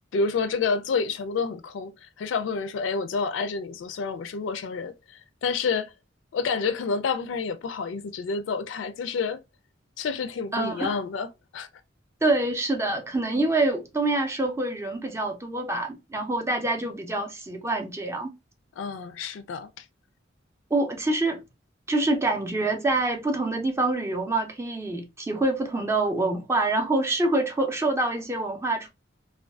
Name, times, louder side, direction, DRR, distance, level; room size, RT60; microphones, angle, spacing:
voice 1, 0.0-5.9 6.3-9.4 10.0-11.7 18.8-19.8, left 5 dB, 75° left, 0.3 m, -29 dB
voice 2, 10.5-11.0 12.2-18.3 20.7-21.4 21.9-28.9, right 2 dB, 15° right, 0.4 m, -26 dB
2.4 x 2.2 x 2.2 m
head